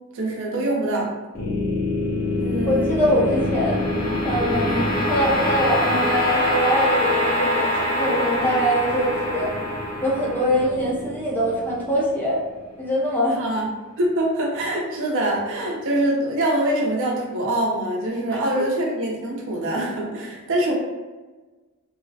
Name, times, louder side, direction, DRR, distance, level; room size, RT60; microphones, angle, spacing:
voice 1, 0.1-1.1 2.4-2.9 4.6-4.8 13.3-13.7 14.0-20.7, right 1 dB, 60° right, -1 dB, 0.6 m, -24 dB
sound 1, 1.3-12.5, left 1 dB, 40° left, 0.7 m, -24 dB
voice 2, 2.7-3.8 4.2-4.7 5.1-9.5 10.0-12.4 12.8-13.4 18.3-18.6, equal, 10° left, -6 dB, 0.5 m, -23 dB
2.3 x 2.0 x 2.6 m, 1.2 s
head